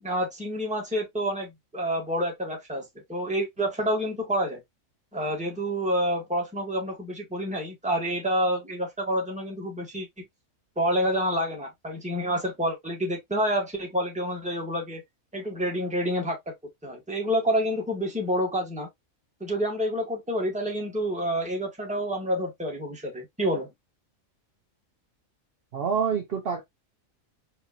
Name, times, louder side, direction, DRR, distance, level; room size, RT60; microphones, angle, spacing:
voice 1, 0.0-4.6 5.1-10.2 10.8-15.0 15.3-16.4 16.8-18.9 19.4-23.7, equal, 5° right, 1.2 m, -28 dB
voice 2, 25.7-26.6, right 6 dB, 50° right, 0.9 m, -26 dB
4.3 x 2.9 x 2.3 m
omnidirectional pair, 1.4 m